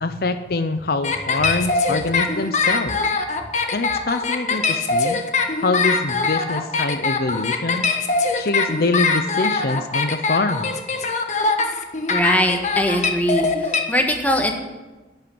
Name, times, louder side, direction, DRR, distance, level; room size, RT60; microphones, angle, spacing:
voice 1, 0.0-3.0 3.7-5.2 5.6-7.9 8.3-10.8, left 3 dB, 55° left, 10 dB, 0.7 m, -24 dB
sound 1, 1.0-13.8, left 4 dB, 40° left, 1.3 m, -22 dB
voice 2, 12.1-14.5, equal, 10° left, 3 dB, 1.5 m, -21 dB
11.5 x 8.9 x 8.6 m, 1.2 s
head